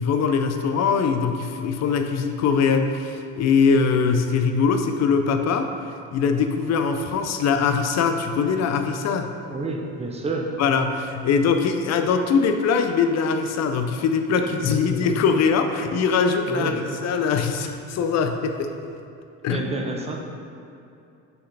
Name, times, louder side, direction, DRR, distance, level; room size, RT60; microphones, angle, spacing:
voice 1, 0.0-5.7 6.1-9.3 10.6-18.7 19.4-19.7, left 5 dB, 55° left, 7 dB, 0.5 m, -22 dB
voice 2, 9.5-10.5 14.7-15.0 16.5-16.8 19.5-20.2, right 3 dB, 20° right, 1 dB, 0.7 m, -29 dB
6.6 x 4.7 x 3.3 m, 2.7 s
cardioid pair, 115°, 33 cm